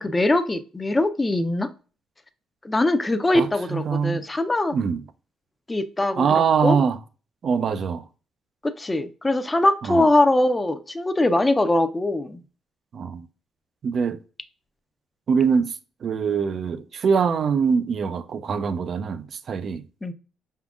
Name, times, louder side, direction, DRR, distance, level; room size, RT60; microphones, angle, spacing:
voice 1, 0.0-1.7 2.6-4.8 5.7-6.8 8.6-12.4 20.0-20.1, left 2 dB, 20° left, 0.4 m, -22 dB
voice 2, 3.3-4.2 4.7-5.0 6.2-7.0 7.4-8.0 9.9-10.0 12.9-13.2 13.8-14.2 15.3-15.8 16.0-19.8, right 6 dB, 55° right, 0.3 m, -23 dB
5.0 x 3.6 x 2.4 m
cardioid pair, 90°, 0 cm